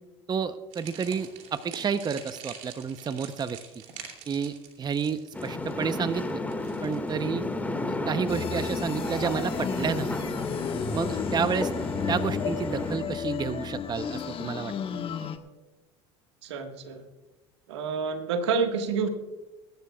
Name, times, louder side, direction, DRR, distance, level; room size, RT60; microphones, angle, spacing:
voice 1, 0.3-3.6 4.3-6.4 6.8-7.4 7.9-10.2 10.9-11.7 12.1-14.7, right 6 dB, 30° right, 12 dB, 0.8 m, -30 dB
sound 1, 0.7-8.0, right 8 dB, 65° right, 2.8 m, -46 dB
sound 2, 5.3-13.0, left 2 dB, 10° left, 1.9 m, -32 dB
sound 3, 8.3-15.4, left 7 dB, 40° left, 1.4 m, -33 dB
voice 2, 16.4-17.0 17.7-19.1, right 5 dB, 85° right, 6 dB, 1.6 m, -28 dB
23.0 x 12.5 x 2.4 m, 1.1 s
hypercardioid pair, 75°, 14 cm